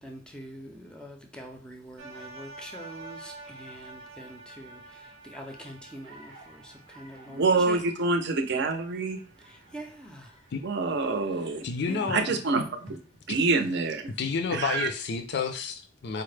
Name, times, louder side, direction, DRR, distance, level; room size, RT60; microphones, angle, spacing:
voice 1, 0.0-7.8 9.4-10.3 11.9-12.5, equal, 5° left, 3 dB, 0.5 m, -44 dB
sound 1, 2.0-12.2 12.8-12.9, right 2 dB, 90° right, 0.8 m, -49 dB
voice 2, 7.3-9.2 10.6-11.6 12.1-13.0 13.3-14.0 14.5-14.9, right 3 dB, 60° right, 5 dB, 0.6 m, -26 dB
voice 3, 11.6-12.3 14.2-16.2, left 5 dB, 60° left, 6 dB, 0.5 m, -30 dB
4.5 x 2.0 x 3.2 m, 0.37 s
head